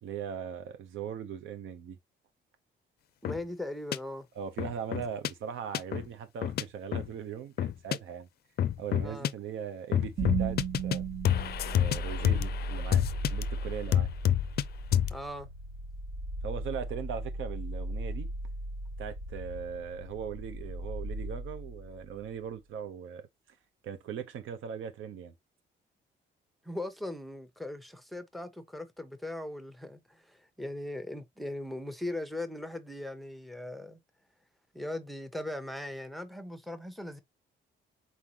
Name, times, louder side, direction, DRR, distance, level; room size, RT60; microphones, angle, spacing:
voice 1, 0.0-2.0 4.3-8.3 8.8-11.1 11.7-14.1 16.4-18.3 19.0-23.3 23.8-25.3, right 8 dB, 80° right, 0.9 m, -39 dB
sound 1, 3.2-3.4 3.9-4.0 4.6-5.3 5.7-6.0 6.4-6.6 6.9-7.1 7.6-8.0 8.6-9.3 9.9-11.0 11.2-13.4 13.9-14.6 14.9-15.2, left 10 dB, 55° left, 0.4 m, -28 dB
voice 2, 3.2-4.3 9.0-9.3 15.1-15.5 26.6-34.0 34.7-37.2, left 1 dB, ahead, 0.8 m, -39 dB
sound 2, 10.2-22.3, right 2 dB, 50° right, 1.3 m, -37 dB
4.2 x 3.8 x 2.8 m
cardioid pair, 90°, 20 cm